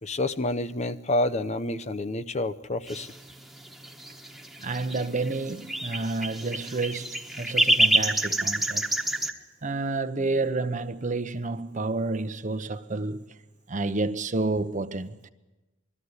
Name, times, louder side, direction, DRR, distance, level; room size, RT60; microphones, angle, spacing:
voice 1, 0.0-3.1, left 2 dB, 35° left, 0.7 m, -28 dB
sound 1, 2.9-9.3, right 1 dB, ahead, 1.3 m, -27 dB
voice 2, 4.6-8.9 9.6-13.2 13.7-15.3, right 3 dB, 40° right, 0.9 m, -30 dB
21.5 x 13.5 x 9.6 m
head